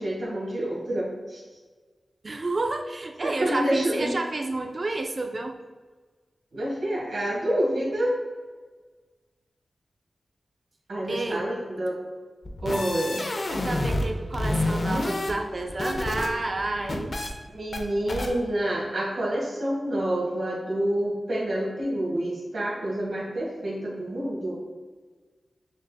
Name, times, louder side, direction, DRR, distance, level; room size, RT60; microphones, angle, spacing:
voice 1, 0.0-1.4 3.2-4.1 6.5-8.2 10.9-12.0 12.6-13.3 17.5-24.5, right 1 dB, 85° right, -5 dB, 1.2 m, -28 dB
voice 2, 2.2-5.6 11.1-11.5 13.5-17.1, right 2 dB, 50° right, 4 dB, 0.3 m, -30 dB
sound 1, 12.4-14.1 14.3-16.3 16.6-17.3 17.7-17.8 18.1-18.3, left 1 dB, 55° left, 0.6 m, -28 dB
6.3 x 2.6 x 2.2 m, 1.4 s
cardioid pair, 55°, 0 cm